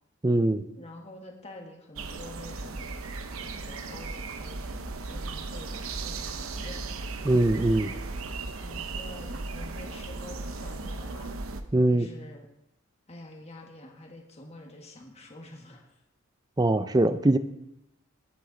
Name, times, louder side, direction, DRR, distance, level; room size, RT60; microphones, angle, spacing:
voice 1, 0.2-0.6 7.2-7.9 11.7-12.1 16.6-17.4, right 1 dB, 20° right, 12 dB, 0.5 m, -22 dB
voice 2, 0.7-3.0 3.4-6.8 8.6-11.4 11.9-12.5 13.1-15.9, left 1 dB, 30° left, 1 dB, 1.5 m, -47 dB
sound 1, 2.0-11.6, right 3 dB, 90° right, 0.9 m, -36 dB
20.5 x 8.2 x 3.9 m, 0.83 s
head